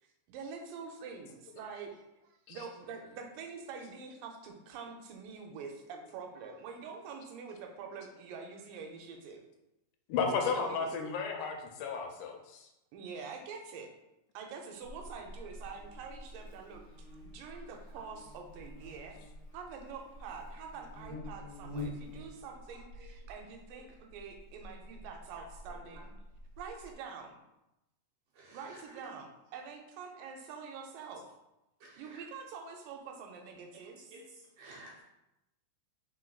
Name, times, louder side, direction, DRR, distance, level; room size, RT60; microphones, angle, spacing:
voice 1, 0.0-9.4 10.5-10.9 12.9-13.9 14.3-19.2 19.5-26.1 26.6-27.3 28.5-31.3 32.0-34.2, right 5 dB, 90° right, 3 dB, 2.3 m, -46 dB
voice 2, 10.1-12.7, left 5 dB, 80° left, 3 dB, 2.0 m, -33 dB
Buzz, 14.8-26.9, left 1 dB, 40° left, 1.2 m, -48 dB
voice 3, 34.6-35.0, right 1 dB, 70° right, -3 dB, 1.9 m, -52 dB
4.4 x 4.3 x 2.3 m, 0.90 s
omnidirectional pair, 3.7 m